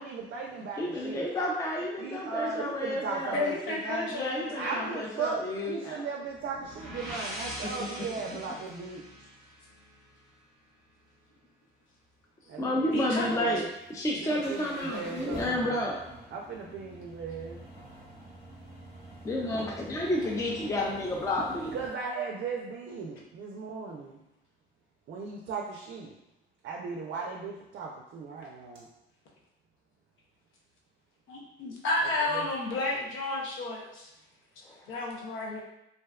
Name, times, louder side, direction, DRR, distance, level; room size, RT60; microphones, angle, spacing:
voice 1, 0.0-1.3 2.0-4.1 4.6-9.3 12.5-13.7 14.2-15.8 16.3-17.6 21.7-24.2 25.1-26.1 26.6-28.9, right 4 dB, 65° right, -1 dB, 0.4 m, -37 dB
voice 2, 0.8-3.4 4.1-6.1 12.6-13.6 13.9-16.0 19.2-21.8 34.7-34.8, left 1 dB, 15° left, -2 dB, 0.4 m, -31 dB
voice 3, 3.3-5.0 12.9-13.5 19.5-19.6 28.4-28.5 31.3-34.1 34.9-35.6, left 2 dB, 80° left, -2 dB, 0.6 m, -32 dB
sound 1, 6.4-10.2, equal, ahead, 0.9 m, -42 dB
sound 2, 12.7-21.9, right 1 dB, 30° left, 1.0 m, -47 dB
2.5 x 2.1 x 2.3 m, 0.87 s
cardioid pair, 90°, 20 cm